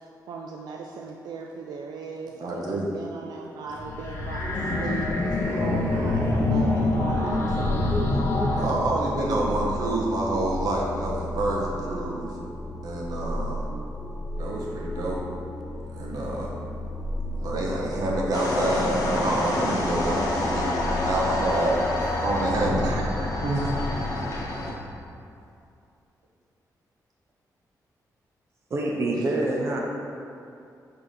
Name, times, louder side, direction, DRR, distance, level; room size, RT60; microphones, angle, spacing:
voice 1, 0.0-8.4 21.2-22.1 22.5-23.5 29.1-29.2, right 4 dB, 80° right, 0 dB, 0.4 m, -38 dB
voice 2, 2.4-2.9 8.5-12.3 12.8-13.6 14.3-15.2 15.9-16.5 17.4-20.7 21.0-21.8 22.2-22.9 23.4-23.7, right 1 dB, 65° right, -3 dB, 1.1 m, -27 dB
sound 1, 3.7-8.7, left 2 dB, 35° left, 0.8 m, -25 dB
sound 2, 7.0-24.1, left 1 dB, ahead, 0.3 m, -34 dB
sound 3, 18.3-24.7, left 1 dB, 60° left, 1.0 m, -28 dB
voice 3, 28.7-29.8, right 2 dB, 40° right, -2 dB, 0.7 m, -26 dB
5.7 x 3.4 x 5.3 m, 2.5 s
wide cardioid pair, 150°, 7 cm